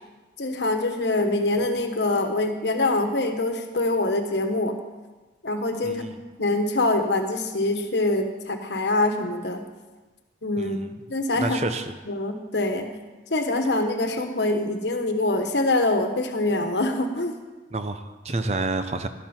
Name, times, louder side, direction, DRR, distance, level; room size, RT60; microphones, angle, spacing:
voice 1, 0.4-4.7 5.4-6.1 6.4-9.6 10.4-10.8 11.1-11.6 12.1-12.9 13.3-17.4, left 2 dB, 75° left, 6 dB, 1.3 m, -24 dB
voice 2, 5.8-6.2 10.6-10.8 11.4-11.9 17.7-19.1, right 2 dB, 35° right, 9 dB, 0.7 m, -29 dB
12.5 x 12.0 x 4.4 m, 1.2 s
head